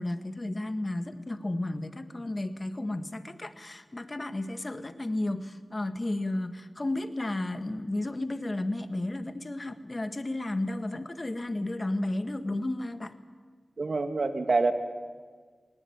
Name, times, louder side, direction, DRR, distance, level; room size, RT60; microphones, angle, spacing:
voice 1, 0.0-13.1, left 1 dB, 35° left, 10 dB, 1.4 m, -33 dB
voice 2, 13.8-14.7, right 3 dB, 60° right, 7 dB, 1.9 m, -26 dB
19.0 x 18.5 x 9.6 m, 1.5 s
cardioid pair, 60°, 0 cm